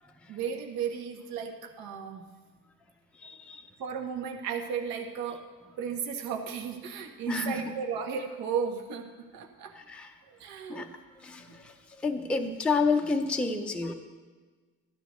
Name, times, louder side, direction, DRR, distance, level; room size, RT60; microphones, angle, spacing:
voice 1, 0.3-2.2 3.8-5.4 5.8-9.7 10.3-10.9 11.5-11.6, right 7 dB, 75° right, 3 dB, 1.4 m, -35 dB
voice 2, 3.2-3.6 7.3-7.6 9.8-10.1 10.7-10.9 11.2-11.7 12.0-13.9, left 4 dB, 5° left, 3 dB, 0.5 m, -29 dB
13.5 x 12.0 x 3.1 m, 1.4 s
cardioid pair, 150°, 36 cm